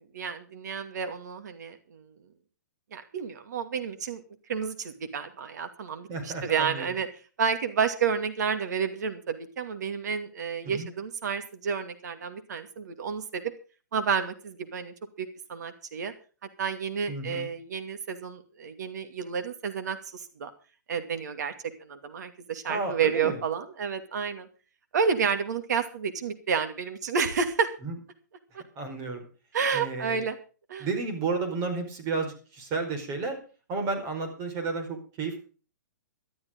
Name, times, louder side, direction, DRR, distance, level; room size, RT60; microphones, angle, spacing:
voice 1, 0.0-2.1 2.9-4.2 4.5-7.1 7.4-13.4 13.9-16.1 16.6-20.5 20.9-21.5 21.8-24.5 24.9-27.7 28.5-28.6 29.5-30.4 30.7-30.9, right 6 dB, 65° right, 8 dB, 2.5 m, -30 dB
voice 2, 6.1-6.9 10.6-10.9 17.1-17.5 22.7-23.4 27.8-27.9 28.7-29.2 29.7-30.2 30.8-33.4 33.7-35.4, right 4 dB, 30° right, 5 dB, 4.8 m, -32 dB
18.0 x 12.5 x 3.8 m, 0.37 s
hypercardioid pair, 140°, 10 cm